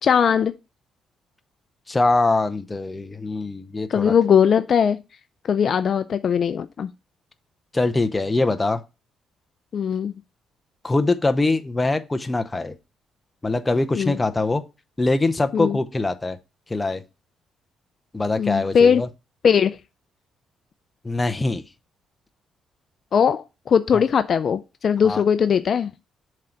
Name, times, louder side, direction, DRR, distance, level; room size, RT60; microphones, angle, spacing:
voice 1, 0.0-0.5 3.9-5.0 5.4-6.9 9.7-10.1 13.9-14.2 15.5-15.8 18.4-19.0 19.4-19.7 23.1-25.9, left 7 dB, 50° left, 0.4 m, -19 dB
voice 2, 1.9-4.1 7.7-8.8 10.8-12.8 13.4-14.6 15.0-16.4 16.7-17.0 18.1-19.1 21.0-21.6 25.0-25.2, left 2 dB, 15° left, 0.7 m, -23 dB
7.5 x 3.9 x 4.4 m
cardioid pair, 110°, 0 cm